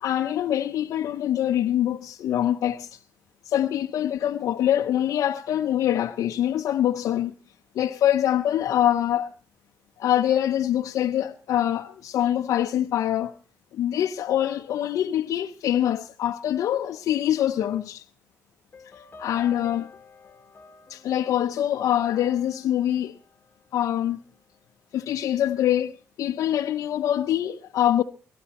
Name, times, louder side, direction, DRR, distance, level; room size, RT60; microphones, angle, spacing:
voice 1, 0.0-3.0 3.4-7.3 7.7-9.3 10.0-13.3 13.7-18.0 18.9-19.9 20.9-23.2 23.7-24.2 24.9-28.0, left 11 dB, 75° left, 0.7 m, -24 dB
sound 1, 18.7-24.0, left 4 dB, 35° left, 1.3 m, -48 dB
22.5 x 13.0 x 4.2 m
cardioid pair, 105°, 6 cm